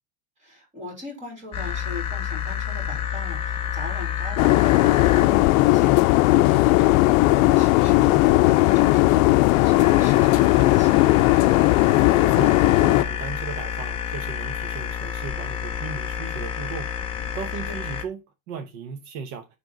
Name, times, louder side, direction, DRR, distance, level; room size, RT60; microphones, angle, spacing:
voice 1, 0.4-11.1 17.6-17.8, left 2 dB, 15° right, 3.1 m, -39 dB
sound 1, 1.5-18.0, left 8 dB, 15° left, 0.4 m, -31 dB
sound 2, 4.4-13.0, left 20 dB, 85° left, 0.5 m, -17 dB
voice 2, 11.9-16.9 17.3-18.2 18.5-19.5, right 6 dB, 65° right, 1.0 m, -36 dB
9.3 x 3.5 x 3.8 m
cardioid pair, 175°, 40 cm